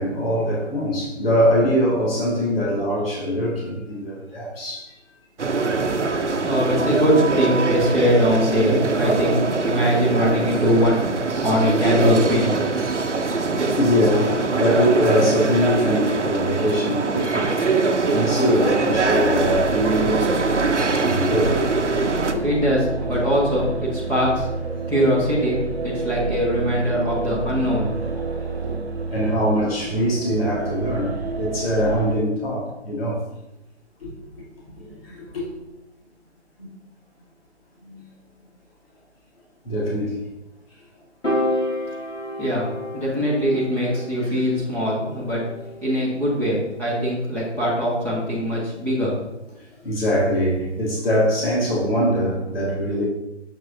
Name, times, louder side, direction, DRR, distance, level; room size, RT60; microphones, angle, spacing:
voice 1, 0.0-4.9 5.6-6.5 12.9-13.0 13.8-17.5 18.0-20.3 20.6-21.6 22.2-22.4 29.1-33.2 34.0-34.1 34.8-35.4 36.6-36.7 37.8-38.1 39.6-40.2 44.2-44.3 49.8-53.0, equal, 55° left, -5 dB, 2.1 m, -23 dB
sound 1, 5.4-22.3, right 3 dB, 75° right, 0.8 m, -23 dB
voice 2, 6.2-11.1 11.4-12.6 22.4-24.5 24.9-27.9 28.6-28.7 42.4-42.7 42.9-45.4 45.8-49.1, equal, 5° left, -8 dB, 1.2 m, -21 dB
sound 2, 18.1-32.2, right 4 dB, 55° right, 1.2 m, -30 dB
Piano, 41.2-47.6, left 1 dB, 80° left, 2.4 m, -31 dB
7.4 x 6.1 x 2.7 m, 0.94 s
figure-of-eight pair, 140°, 35 cm